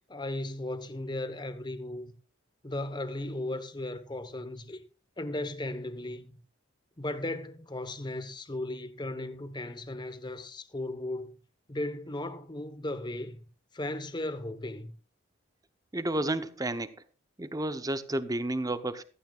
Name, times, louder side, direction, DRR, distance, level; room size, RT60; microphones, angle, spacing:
voice 1, 0.1-2.1 2.6-4.8 5.2-6.4 7.0-11.4 11.7-13.4 13.7-14.9, left 1 dB, 20° left, 1.0 m, -36 dB
voice 2, 15.9-16.9 17.4-19.0, right 1 dB, 20° right, 0.7 m, -31 dB
15.5 x 14.5 x 2.3 m
head